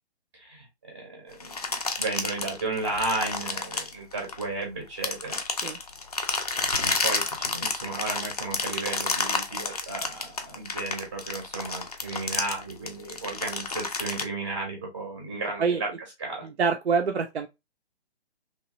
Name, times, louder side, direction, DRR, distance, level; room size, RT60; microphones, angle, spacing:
voice 1, 0.3-1.5 2.0-5.4 7.0-15.9 16.2-16.5, right 3 dB, 20° right, 0.6 m, -34 dB
sound 1, 1.4-4.6 5.0-14.2, left 3 dB, 40° left, 0.4 m, -30 dB
voice 2, 16.6-17.5, right 5 dB, 75° right, 0.5 m, -25 dB
3.0 x 2.3 x 2.9 m
figure-of-eight pair, 145°, 33 cm